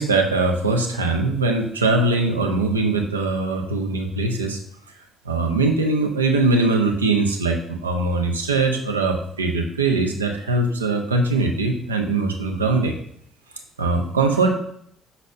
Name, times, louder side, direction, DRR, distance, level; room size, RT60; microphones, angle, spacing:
voice 1, 0.0-4.6 5.2-13.0 13.8-14.5, right 3 dB, 80° right, 3 dB, 0.4 m, -21 dB
5.3 x 4.0 x 2.5 m, 0.68 s
figure-of-eight pair, 45°, 0 cm